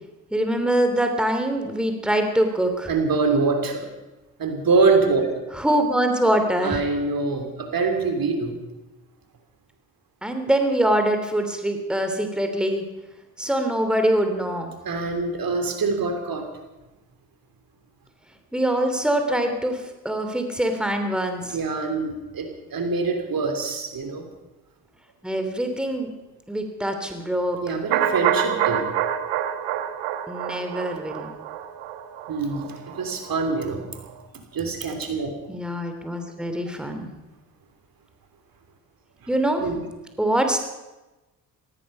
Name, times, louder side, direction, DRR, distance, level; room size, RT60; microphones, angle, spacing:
voice 1, 0.3-2.9 5.5-6.8 10.2-12.8 13.4-14.7 18.5-21.6 25.2-26.1 26.5-27.8 30.3-31.3 35.5-37.1 39.3-39.6 40.2-40.6, right 1 dB, ahead, 5 dB, 3.0 m, -24 dB
voice 2, 2.9-3.9 4.4-5.3 6.6-8.5 14.8-16.5 21.5-24.3 27.6-28.9 32.3-33.8 34.5-35.3 39.6-39.8, right 4 dB, 50° right, 5 dB, 3.2 m, -24 dB
sound 1, 27.9-33.8 34.1-34.2, right 10 dB, 75° right, 1.3 m, -27 dB
17.5 x 15.0 x 5.5 m, 1.1 s
hypercardioid pair, 45°, 45 cm